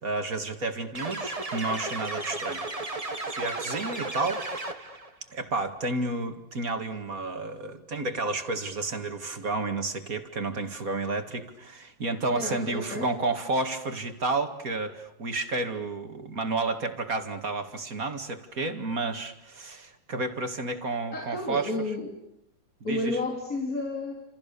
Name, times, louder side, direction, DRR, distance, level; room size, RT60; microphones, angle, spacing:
voice 1, 0.0-3.0 3.3-4.4 5.3-21.7 22.9-23.2, right 3 dB, 45° right, 6 dB, 2.5 m, -31 dB
sound 1, 0.9-5.1, right 2 dB, 20° right, 1.6 m, -34 dB
voice 2, 12.3-13.1 21.1-22.2 22.8-24.2, left 2 dB, 45° left, 1 dB, 3.7 m, -31 dB
29.5 x 28.0 x 7.0 m, 0.78 s
omnidirectional pair, 2.1 m